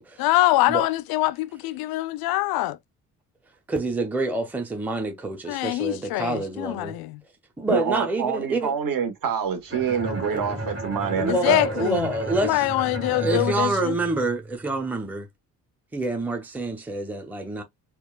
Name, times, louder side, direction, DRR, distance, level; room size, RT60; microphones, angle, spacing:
voice 1, 0.2-2.8 5.5-7.2 11.3-12.1 12.4-14.0, left 17 dB, 55° left, 0.5 m, -24 dB
voice 2, 3.7-6.9 7.6-8.7 10.3-10.6 11.2-12.7 13.1-15.3 15.9-17.6, right 2 dB, 5° right, 0.8 m, -27 dB
voice 3, 7.7-11.7, right 7 dB, 50° right, 1.4 m, -26 dB
Bowed string instrument, 9.7-14.6, right 2 dB, 30° right, 1.8 m, -33 dB
4.4 x 2.3 x 2.4 m
hypercardioid pair, 45°, 44 cm